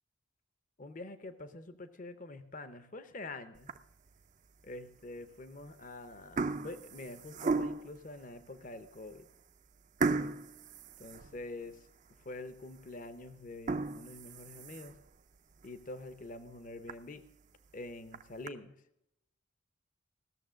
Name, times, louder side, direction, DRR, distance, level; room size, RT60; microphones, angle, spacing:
voice 1, 0.8-3.7 4.6-9.3 11.0-11.9 12.2-14.9 15.6-17.2 17.7-18.7, left 2 dB, 40° left, 12 dB, 0.7 m, -46 dB
sound 1, 3.6-4.1 4.7-4.8 5.6-5.9 6.1-8.0 8.6-8.7 9.1-9.2 10.0-11.8 12.2-12.3 12.8-12.9 13.5-15.1 15.6-15.7 16.1-16.2 16.5-16.6 16.9-17.0 17.9-18.5, right 3 dB, 40° right, 0.5 m, -35 dB
16.5 x 6.9 x 6.3 m, 0.83 s
head